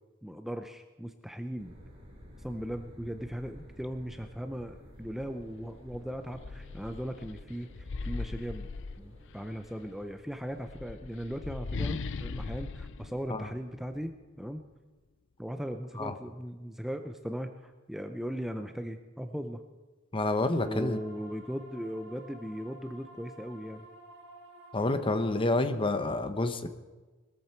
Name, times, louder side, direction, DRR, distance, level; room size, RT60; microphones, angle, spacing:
voice 1, 0.2-1.7 2.4-8.7 9.0-14.6 15.4-19.6 20.6-23.9, equal, ahead, 6 dB, 0.6 m, -38 dB
sound 1, 1.6-10.8, equal, 30° right, 4.2 m, -52 dB
sound 2, 5.4-5.5 5.9-9.5 10.5-14.1, left 4 dB, 60° left, 0.6 m, -39 dB
voice 2, 20.1-21.0 24.7-26.7, left 2 dB, 25° left, 10 dB, 1.0 m, -28 dB
sound 3, 20.5-25.6, right 1 dB, 65° right, 3.5 m, -52 dB
21.0 x 13.5 x 4.5 m, 1.3 s
head